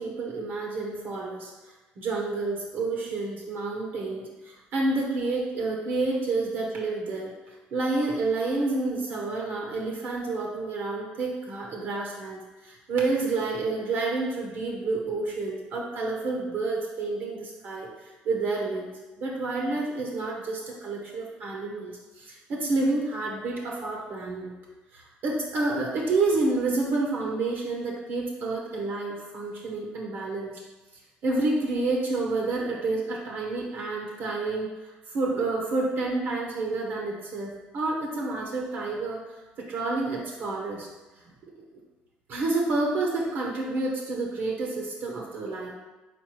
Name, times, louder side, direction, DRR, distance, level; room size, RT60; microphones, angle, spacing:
voice 1, 0.0-1.5 2.0-7.3 7.7-17.9 18.2-24.5 24.9-30.5 31.2-39.2 39.6-40.9 42.3-45.7, right 3 dB, 65° right, -2 dB, 0.8 m, -29 dB
4.3 x 4.0 x 3.1 m, 1.1 s
supercardioid pair, 85°, 4 cm